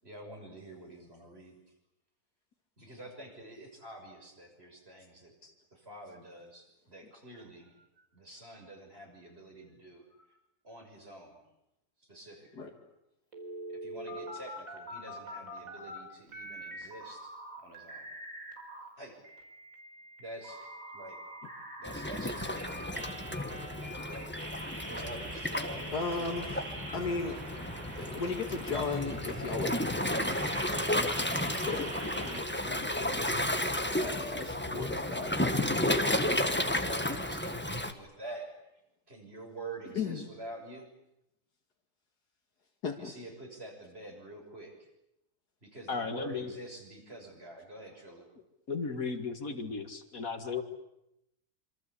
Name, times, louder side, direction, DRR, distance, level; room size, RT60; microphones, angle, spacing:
voice 1, 0.0-1.5 2.8-5.3 5.7-10.3 10.6-11.4 12.1-12.7 13.7-17.3 17.6-18.1 19.0-19.1 20.2-20.6 20.9-21.2 21.8-23.2 24.1-26.9 36.6-38.5 39.1-40.9 43.0-44.7 45.6-48.3, right 2 dB, 40° right, 2 dB, 6.7 m, -47 dB
sound 1, 13.3-16.0 16.3-18.9 19.2-32.4, right 1 dB, 60° right, 5.4 m, -44 dB
Waves surf, 21.9-37.9, left 1 dB, 5° left, 1.5 m, -33 dB
voice 2, 25.9-27.4 28.0-33.3 34.0-37.2 39.9-40.3 42.8-43.1, left 4 dB, 85° left, 1 dB, 2.6 m, -37 dB
voice 3, 45.9-46.5 48.7-50.6, left 4 dB, 60° left, 7 dB, 2.4 m, -35 dB
26.5 x 26.0 x 8.5 m, 0.85 s
omnidirectional pair, 1.7 m